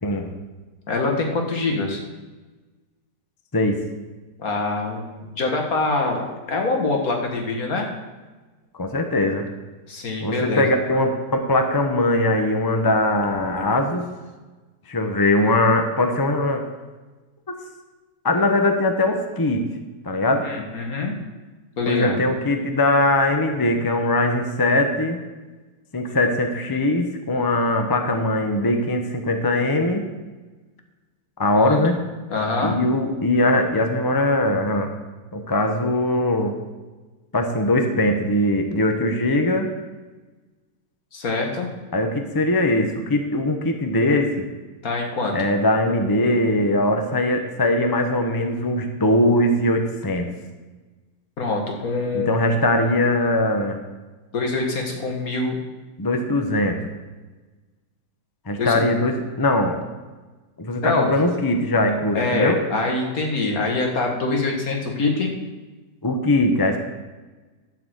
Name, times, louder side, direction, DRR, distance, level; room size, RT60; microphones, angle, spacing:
voice 1, 0.9-2.0 4.4-7.9 9.9-10.6 20.4-21.2 21.8-22.2 26.1-26.2 31.5-31.8 32.3-32.8 41.1-41.7 44.8-45.5 51.4-52.6 54.3-55.6 58.6-58.8 60.8-61.1 62.1-65.3, left 3 dB, 55° left, 2 dB, 2.0 m, -24 dB
voice 2, 8.7-9.5 10.2-14.1 14.9-16.6 18.2-19.7 20.0-20.5 21.9-25.2 25.9-30.1 31.4-32.0 32.6-34.9 35.3-36.5 37.3-39.7 41.9-44.5 45.3-50.3 52.1-53.8 56.0-56.8 58.5-59.8 60.6-62.6 66.0-66.8, left 1 dB, 20° left, 4 dB, 0.6 m, -21 dB
12.0 x 4.8 x 7.8 m, 1.2 s
omnidirectional pair, 1.8 m